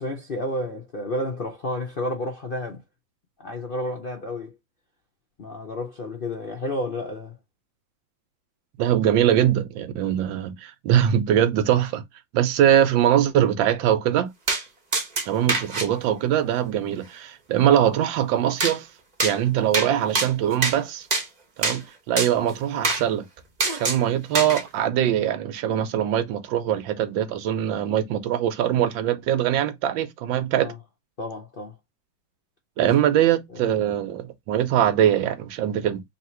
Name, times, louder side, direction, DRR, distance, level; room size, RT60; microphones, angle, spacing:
voice 1, 0.0-2.8 3.4-4.6 5.4-7.4 30.5-30.8 31.2-31.8 32.8-32.9 33.5-33.7, left 1 dB, 60° left, 0.5 m, -31 dB
voice 2, 8.8-12.0 12.3-14.3 15.3-18.9 19.2-21.1 21.6-23.2 23.7-30.7 32.8-36.0, right 10 dB, 85° right, 1.4 m, -22 dB
sound 1, 14.5-14.6 14.9-15.9 18.6-18.8 19.2-19.4 19.7-19.9 20.1-20.8 21.1-21.3 21.6-21.8 22.2-22.3 22.8-23.0 23.6-24.0 24.3-24.6, right 3 dB, 35° right, 0.7 m, -24 dB
3.2 x 2.9 x 4.3 m
omnidirectional pair, 2.1 m